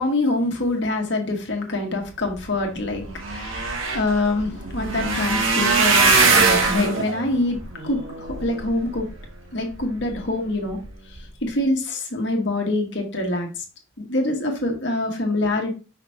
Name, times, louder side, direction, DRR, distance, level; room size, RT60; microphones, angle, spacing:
voice 1, 0.0-9.1 9.5-10.8 11.4-13.5 14.0-15.7, left 2 dB, 60° left, 2 dB, 1.6 m, -25 dB
sound 1, 2.6-2.7 2.9-9.3 9.8-10.2 10.7-10.9 11.1-11.2, right 4 dB, 80° right, 1.5 m, -22 dB
5.8 x 3.1 x 5.5 m, 0.32 s
head